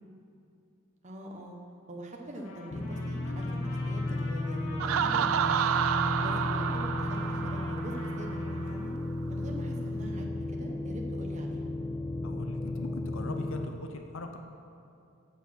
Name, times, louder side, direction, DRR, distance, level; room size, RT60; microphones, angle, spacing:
voice 1, 1.0-1.6 1.9-5.6 6.2-8.9 9.3-11.6, right 1 dB, 35° right, 0 dB, 1.0 m, -43 dB
Trumpet, 2.3-8.9, left 2 dB, 85° left, 1.7 m, -47 dB
sound 1, 2.7-13.7, left 1 dB, 20° left, 0.4 m, -34 dB
Laughter, 4.8-8.5, right 8 dB, 65° right, 0.4 m, -30 dB
voice 2, 12.2-14.4, left 2 dB, 60° left, 5 dB, 0.6 m, -41 dB
8.1 x 7.5 x 6.1 m, 2.7 s
head